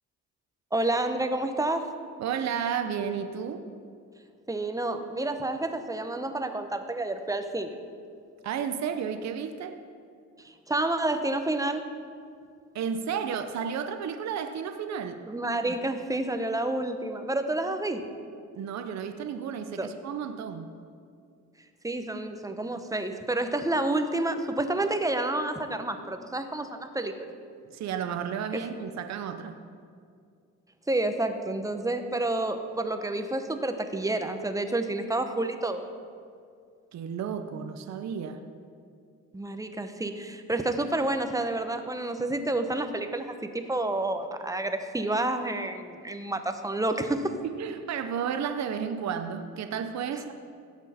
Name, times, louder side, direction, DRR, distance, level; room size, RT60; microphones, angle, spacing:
voice 1, 0.7-1.9 4.5-7.7 10.7-11.8 15.3-18.0 19.8-19.9 21.8-27.1 28.5-28.6 30.9-35.8 39.3-47.3, right 2 dB, 10° right, 7 dB, 0.8 m, -29 dB
voice 2, 2.2-3.6 8.4-9.8 12.7-15.2 18.5-20.7 27.7-29.6 36.9-38.4 47.4-50.3, right 7 dB, 65° right, 7 dB, 0.7 m, -32 dB
16.5 x 6.2 x 4.2 m, 2.2 s
cardioid pair, 90°, 30 cm